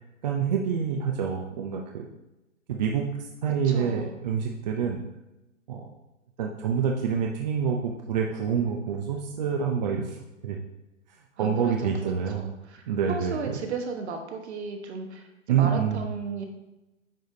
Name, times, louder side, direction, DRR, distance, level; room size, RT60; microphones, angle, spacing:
voice 1, 0.2-2.1 2.7-5.0 5.7-5.9 6.4-10.2 10.4-10.6 11.4-12.4 12.9-13.5 15.5-16.0, right 7 dB, 35° right, 1 dB, 0.6 m, -27 dB
voice 2, 3.6-4.2 11.4-16.5, right 5 dB, 55° right, 4 dB, 1.2 m, -35 dB
9.3 x 4.9 x 2.7 m, 0.97 s
hypercardioid pair, 145°, 39 cm